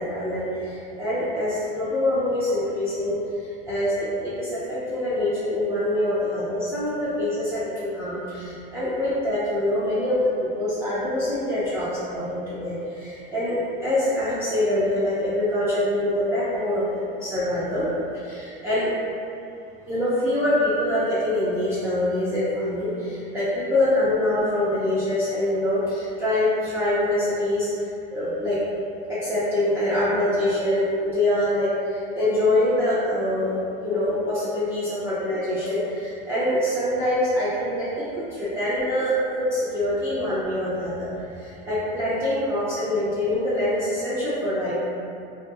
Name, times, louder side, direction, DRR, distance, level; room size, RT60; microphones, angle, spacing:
voice 1, 0.0-16.8 17.2-17.9 18.2-18.9 19.8-27.7 28.1-28.6 29.1-44.7, left 1 dB, 10° right, -12 dB, 0.4 m, -25 dB
2.6 x 2.5 x 2.2 m, 2.6 s
supercardioid pair, 130°, 29 cm